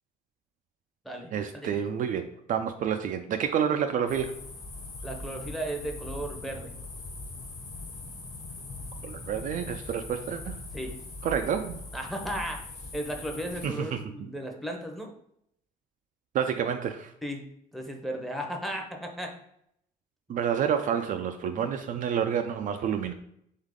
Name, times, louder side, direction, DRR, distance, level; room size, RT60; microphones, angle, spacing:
voice 1, 1.3-4.4 9.0-10.6 11.2-11.8 13.6-14.3 16.3-17.1 20.3-23.1, right 8 dB, 50° right, 6 dB, 0.4 m, -29 dB
sound 1, 4.1-13.7, left 2 dB, 40° left, 1.2 m, -41 dB
voice 2, 5.0-6.7 10.7-10.9 11.9-12.6 12.9-15.1 17.2-17.4 17.7-19.3, right 1 dB, ahead, 2 dB, 0.8 m, -35 dB
3.7 x 3.4 x 3.6 m, 0.73 s
cardioid pair, 110°, 17 cm